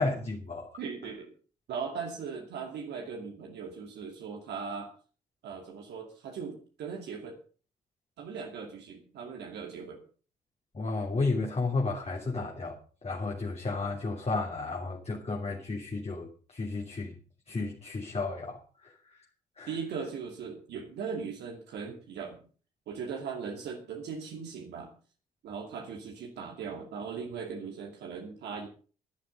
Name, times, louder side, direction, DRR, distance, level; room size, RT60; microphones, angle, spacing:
voice 1, 0.0-0.7 10.7-17.2 17.5-18.9 19.6-19.8, left 3 dB, 35° left, 0 dB, 3.1 m, -33 dB
voice 2, 0.8-1.3 1.7-4.9 5.4-7.4 8.2-10.0 19.7-22.4 22.9-24.9 25.4-28.7, right 6 dB, 70° right, 2 dB, 2.4 m, -39 dB
13.0 x 11.0 x 5.3 m, 0.40 s
hypercardioid pair, 40°, 19 cm